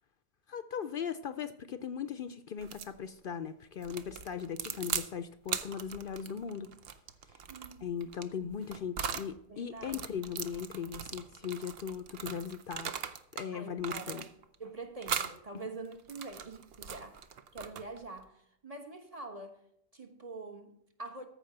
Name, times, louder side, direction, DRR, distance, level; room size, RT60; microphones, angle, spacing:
voice 1, 0.5-6.7 7.8-12.9 13.3-14.2, left 7 dB, 60° left, 0.7 m, -38 dB
sound 1, 2.6-3.0 3.8-5.1 5.5-9.3 9.8-13.5 13.8-14.6 15.0-15.4 15.9-18.0, right 7 dB, 65° right, 0.9 m, -39 dB
voice 2, 7.5-7.9 9.5-10.2 13.5-14.3 14.6-17.2 17.5-19.6 19.9-21.3, right 3 dB, 35° right, 1.4 m, -45 dB
14.0 x 4.7 x 7.9 m
omnidirectional pair, 1.1 m